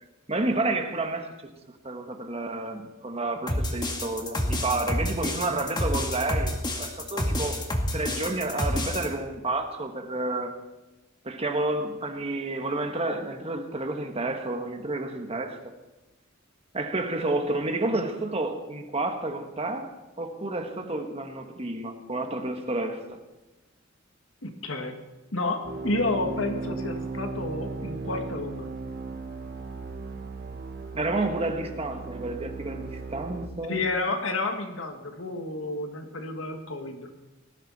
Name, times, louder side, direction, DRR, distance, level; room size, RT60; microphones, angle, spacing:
voice 1, 0.3-1.3 1.7-7.6 7.9-10.6 11.2-15.6 16.7-19.9 20.2-23.2 30.9-33.8, right 2 dB, 30° right, 5 dB, 1.6 m, -30 dB
sound 1, 3.5-9.1, left 1 dB, 20° left, 1.9 m, -28 dB
voice 2, 24.4-24.9 25.3-28.7 33.7-37.1, left 2 dB, 70° left, 5 dB, 2.0 m, -30 dB
sound 2, 25.6-33.5, right 3 dB, 50° right, 1.5 m, -36 dB
18.5 x 15.0 x 4.3 m, 1.1 s
head